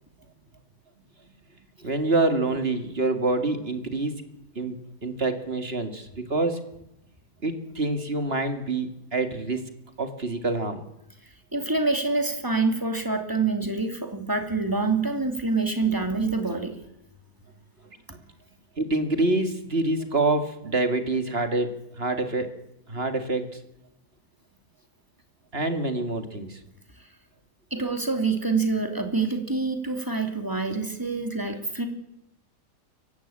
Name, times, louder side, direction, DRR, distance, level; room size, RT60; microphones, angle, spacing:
voice 1, 1.8-4.1 4.6-6.6 7.4-9.6 10.0-10.8 17.8-18.0 18.8-22.5 22.9-23.6 25.5-26.6, right 2 dB, 35° right, 7 dB, 2.4 m, -26 dB
voice 2, 11.5-16.7 27.7-31.9, right 3 dB, 10° right, 5 dB, 2.7 m, -26 dB
23.5 x 16.0 x 8.8 m, 0.83 s
omnidirectional pair, 1.8 m